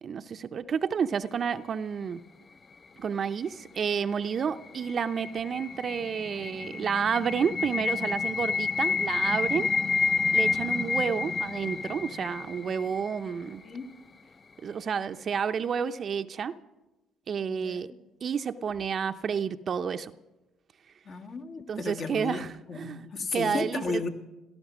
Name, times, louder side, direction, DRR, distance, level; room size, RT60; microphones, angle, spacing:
voice 1, 0.0-2.2 3.0-9.7 10.3-13.6 14.6-16.5 17.3-17.9 18.2-20.1 21.7-23.0 23.3-24.0, right 7 dB, 50° right, 9 dB, 0.6 m, -30 dB
sound 1, 4.4-13.4, left 4 dB, 35° left, 0.6 m, -29 dB
voice 2, 17.5-17.8 21.1-24.1, left 4 dB, 55° left, 4 dB, 1.8 m, -34 dB
17.5 x 13.0 x 6.2 m, 1.0 s
supercardioid pair, 70°, 0 cm